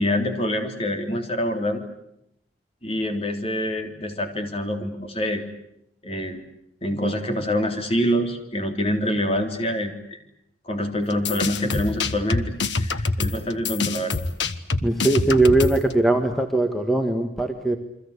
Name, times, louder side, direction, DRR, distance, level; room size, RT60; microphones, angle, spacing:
voice 1, 0.0-1.9 2.8-5.4 6.0-6.4 6.8-10.2 10.7-14.3, equal, 35° left, 5 dB, 3.5 m, -26 dB
sound 1, 11.1-15.9, left 3 dB, 85° left, 1.5 m, -25 dB
voice 2, 14.8-17.8, right 2 dB, ahead, 5 dB, 1.7 m, -20 dB
29.0 x 23.5 x 8.4 m, 0.77 s
head